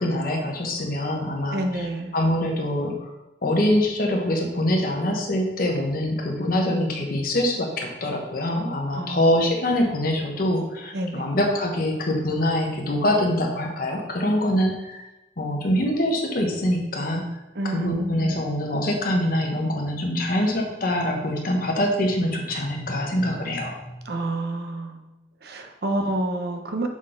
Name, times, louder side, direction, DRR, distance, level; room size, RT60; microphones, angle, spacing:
voice 1, 0.0-1.9 2.1-2.9 3.4-15.0 15.4-17.2 17.6-23.9, left 1 dB, 50° left, 1 dB, 1.0 m, -24 dB
voice 2, 1.5-2.1 8.9-9.4 10.9-11.3 17.5-18.5 24.1-25.0 25.4-26.9, right 1 dB, 60° right, 4 dB, 0.7 m, -29 dB
6.2 x 4.0 x 3.8 m, 1.0 s
head